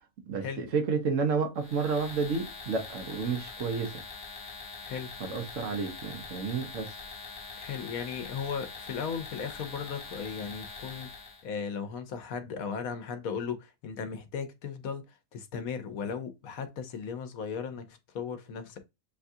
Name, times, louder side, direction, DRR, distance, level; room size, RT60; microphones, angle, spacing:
voice 1, 0.3-4.0 5.2-6.9, right 5 dB, 65° right, 1.2 m, -30 dB
sound 1, 1.6-11.4, left 4 dB, 40° left, 1.1 m, -44 dB
voice 2, 7.6-18.8, left 6 dB, 85° left, 1.2 m, -37 dB
6.7 x 2.4 x 2.6 m
omnidirectional pair, 1.4 m